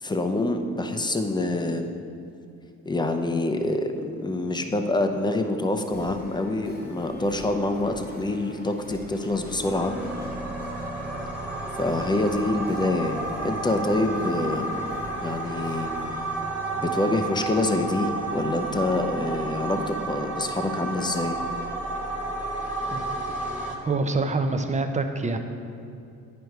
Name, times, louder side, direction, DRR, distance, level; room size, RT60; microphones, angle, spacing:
voice 1, 0.0-2.0 2.9-9.9 11.8-14.9 15.2-15.9 16.8-21.4, left 2 dB, 15° left, 6 dB, 0.7 m, -26 dB
sound 1, 5.9-16.1, left 1 dB, 30° left, 1.2 m, -45 dB
sound 2, 9.3-23.8, right 2 dB, 5° right, 1.5 m, -32 dB
voice 2, 23.8-25.4, right 3 dB, 25° right, 6 dB, 0.6 m, -26 dB
9.6 x 5.2 x 4.7 m, 2.6 s
cardioid pair, 90°, 30 cm